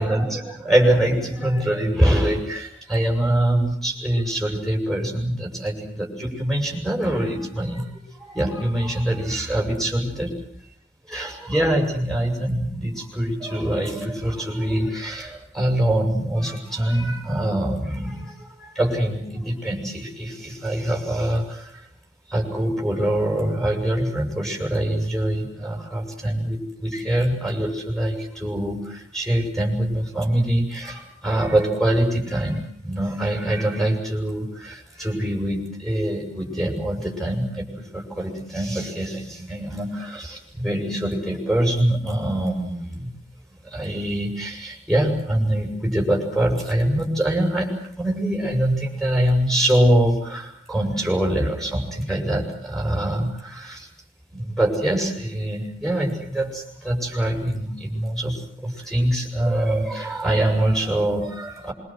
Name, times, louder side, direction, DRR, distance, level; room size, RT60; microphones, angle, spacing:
voice 1, 0.0-10.3 11.1-21.8 22.3-37.6 37.9-43.1 43.6-47.7 48.0-53.9 54.3-58.3 58.6-61.7, right 1 dB, ahead, 0 dB, 7.7 m, -24 dB
26.0 x 24.0 x 7.8 m, 0.63 s
head